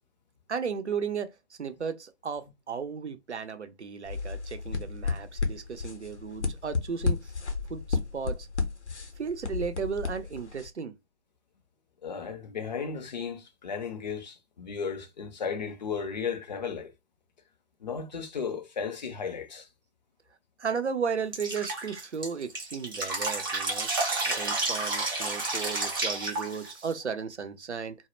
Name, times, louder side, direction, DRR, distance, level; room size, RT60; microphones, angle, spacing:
voice 1, 0.5-7.3 7.7-8.5 9.2-10.9 20.6-23.9 24.3-28.0, right 6 dB, 85° right, 0.5 m, -35 dB
sound 1, 4.1-10.7, left 4 dB, 85° left, 0.7 m, -32 dB
voice 2, 12.0-16.9 17.8-19.7, left 6 dB, 40° left, 0.5 m, -35 dB
Drip, 21.3-26.9, right 2 dB, 20° right, 0.4 m, -30 dB
2.1 x 2.0 x 3.0 m
figure-of-eight pair, 130°, 33 cm